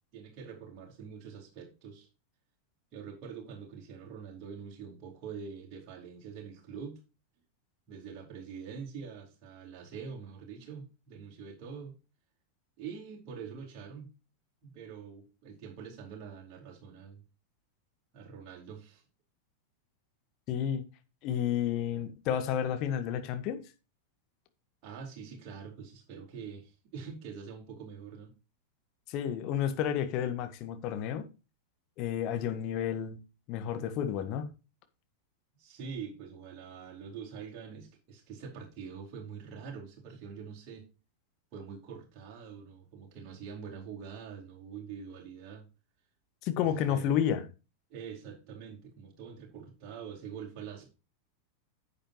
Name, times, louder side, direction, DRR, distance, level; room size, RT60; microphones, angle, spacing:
voice 1, 0.1-2.1 2.9-7.0 7.9-12.0 12.8-14.1 14.6-17.2 18.1-19.0 24.8-28.3 35.6-40.8 41.5-45.7 46.7-47.1 47.9-50.9, right 6 dB, 40° right, 4.7 m, -45 dB
voice 2, 20.5-20.8 21.2-23.6 29.1-31.3 32.0-33.2 33.5-34.5 46.4-47.4, left 9 dB, 40° left, 1.6 m, -31 dB
10.0 x 8.6 x 3.1 m
figure-of-eight pair, 90°, 0 cm